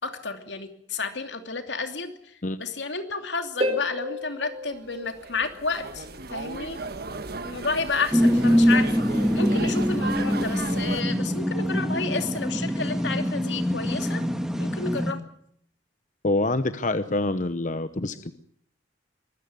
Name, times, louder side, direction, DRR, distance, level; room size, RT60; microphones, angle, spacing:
voice 1, 0.0-6.1 6.3-6.8 7.4-14.2 14.6-15.2, left 4 dB, 85° left, 6 dB, 2.8 m, -31 dB
Harp, 3.6-6.1 9.6-9.7, left 1 dB, 35° right, 4.4 m, -32 dB
sound 1, 4.7-11.0, right 3 dB, 60° right, 1.6 m, -36 dB
sound 2, 8.1-15.1, equal, 5° right, 1.7 m, -24 dB
voice 2, 16.2-18.3, left 2 dB, 45° left, 11 dB, 0.9 m, -26 dB
23.5 x 14.0 x 9.7 m, 0.68 s
head